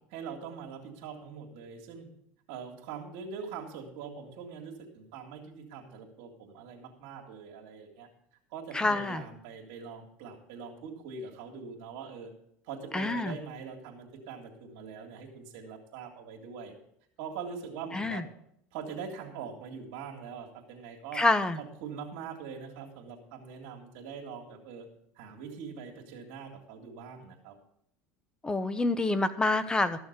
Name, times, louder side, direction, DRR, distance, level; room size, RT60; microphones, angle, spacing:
voice 1, 0.1-2.1 2.5-8.1 8.5-12.3 12.6-16.7 17.2-18.3 18.7-21.2 21.6-24.9 25.2-27.5, right 6 dB, 75° right, -1 dB, 2.2 m, -43 dB
voice 2, 8.7-9.2 12.9-13.4 17.9-18.2 21.1-21.6 28.4-30.1, left 2 dB, 15° left, 13 dB, 0.9 m, -27 dB
13.5 x 6.4 x 6.7 m, 0.71 s
supercardioid pair, 110°, 6 cm